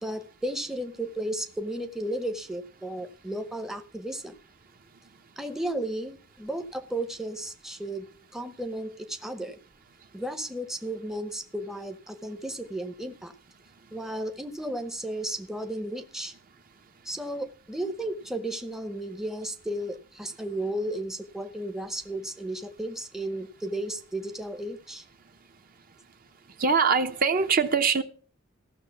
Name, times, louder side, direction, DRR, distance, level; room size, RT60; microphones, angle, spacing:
voice 1, 0.0-4.4 5.4-9.6 10.1-13.3 13.9-16.3 17.0-25.0, right 1 dB, ahead, 0.7 m, -34 dB
voice 2, 26.6-28.0, right 5 dB, 45° right, 0.9 m, -22 dB
15.0 x 6.3 x 7.0 m
head